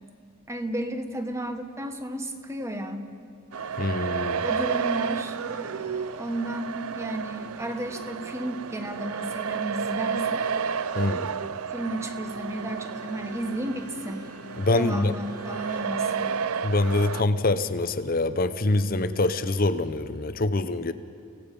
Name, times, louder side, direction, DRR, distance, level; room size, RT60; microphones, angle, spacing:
voice 1, 0.5-3.1 4.4-10.5 11.7-14.3 14.7-16.3, right 1 dB, 15° right, 7 dB, 1.1 m, -33 dB
sound 1, 3.5-17.2, right 6 dB, 85° right, 0.6 m, -31 dB
voice 2, 3.8-4.4 10.9-11.3 14.6-15.2 16.6-20.9, left 2 dB, 40° left, 12 dB, 0.7 m, -25 dB
Bowed string instrument, 12.3-16.0, left 1 dB, 15° left, 1.7 m, -52 dB
30.0 x 17.0 x 5.3 m, 2.4 s
head